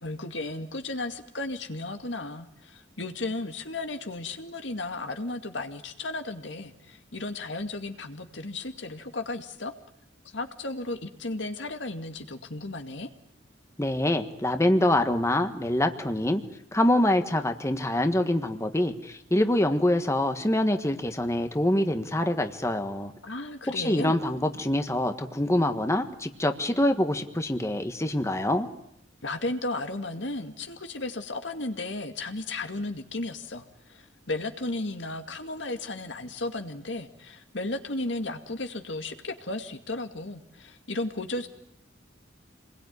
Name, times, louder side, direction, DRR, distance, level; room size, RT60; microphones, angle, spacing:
voice 1, 0.0-9.7 10.3-13.1 23.2-24.2 29.2-41.5, left 2 dB, 70° left, 6 dB, 2.3 m, -34 dB
voice 2, 13.8-16.4 16.7-23.1 23.7-28.7, left 1 dB, 15° left, 7 dB, 1.5 m, -25 dB
28.0 x 21.5 x 9.6 m, 0.75 s
head